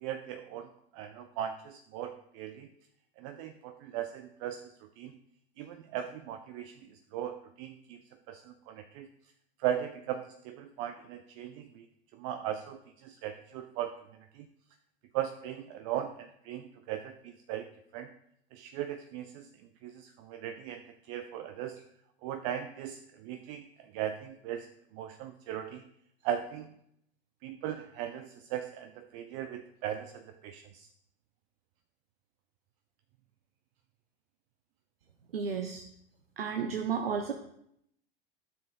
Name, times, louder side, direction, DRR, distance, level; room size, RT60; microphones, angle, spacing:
voice 1, 0.0-2.7 3.2-5.1 5.6-8.0 8.3-9.1 9.6-11.9 12.1-13.9 14.3-14.5 15.1-18.1 18.5-19.5 19.8-20.8 21.1-21.8 22.2-24.7 24.9-25.8 26.2-26.7 27.4-30.9, right 10 dB, 35° right, 9 dB, 0.4 m, -38 dB
voice 2, 35.3-35.8 36.4-37.3, right 6 dB, 75° right, 5 dB, 0.7 m, -32 dB
12.5 x 6.9 x 2.2 m, 0.72 s
figure-of-eight pair, 85°, 30 cm